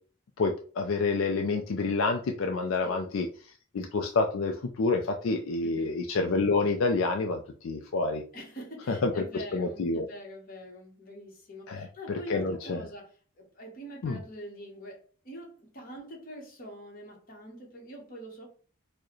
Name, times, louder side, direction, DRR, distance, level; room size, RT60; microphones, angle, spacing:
voice 1, 0.4-3.3 3.7-8.2 8.9-9.2 9.5-10.1 11.7-11.9 12.3-12.8 14.0-14.2, left 3 dB, 70° left, 4 dB, 0.4 m, -28 dB
voice 2, 5.6-5.9 8.3-18.5, equal, 40° left, 0 dB, 1.1 m, -44 dB
4.6 x 2.1 x 3.0 m, 0.42 s
head